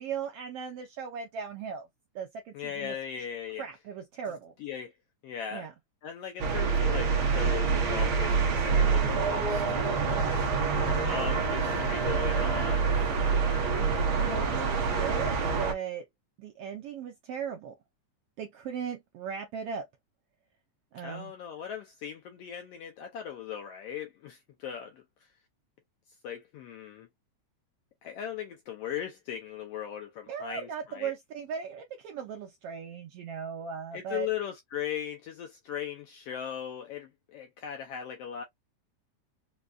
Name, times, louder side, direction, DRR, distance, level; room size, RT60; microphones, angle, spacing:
voice 1, 0.0-1.9 2.1-3.0 3.6-4.5 5.5-5.7 14.2-16.1 16.4-17.7 18.4-19.9 20.9-21.3 30.3-34.3, right 7 dB, 80° right, 1.3 m, -37 dB
voice 2, 2.5-3.6 4.6-4.9 5.2-5.7 6.0-9.6 9.9-10.0 10.3-13.1 14.2-14.5 21.0-25.0 26.2-27.1 28.0-31.1 33.9-38.4, left 9 dB, 75° left, 1.4 m, -38 dB
sound 1, 6.4-15.7, right 5 dB, 60° right, 1.5 m, -26 dB
5.0 x 2.3 x 2.3 m
omnidirectional pair, 3.3 m